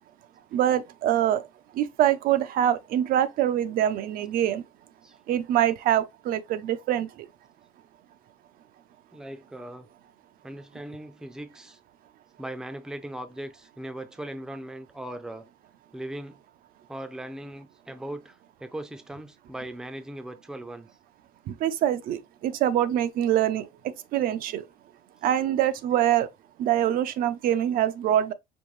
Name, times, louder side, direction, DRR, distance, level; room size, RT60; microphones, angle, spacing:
voice 1, 0.5-1.4 1.7-4.6 5.3-7.1 21.5-24.6 25.2-26.3 26.6-28.3, right 11 dB, 70° right, 0.5 m, -24 dB
voice 2, 9.1-9.9 10.4-11.8 12.4-15.5 15.9-16.4 16.9-20.9, right 1 dB, 5° right, 0.5 m, -39 dB
5.3 x 2.7 x 3.1 m
cardioid pair, 150°, 15 cm